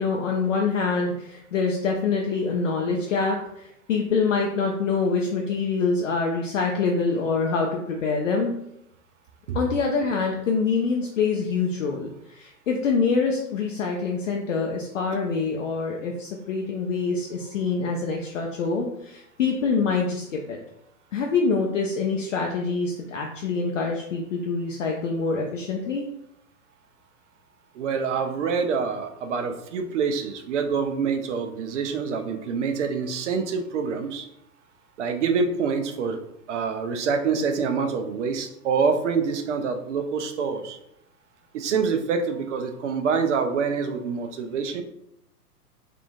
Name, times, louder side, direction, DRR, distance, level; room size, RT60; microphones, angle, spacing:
voice 1, 0.0-8.5 9.5-20.6 21.1-26.1, left 4 dB, 55° left, 1 dB, 0.5 m, -25 dB
voice 2, 27.8-34.3 35.0-36.2 36.5-40.8 41.5-44.8, right 5 dB, 50° right, 7 dB, 0.5 m, -26 dB
3.6 x 2.4 x 2.3 m, 0.78 s
figure-of-eight pair, 105°, 48 cm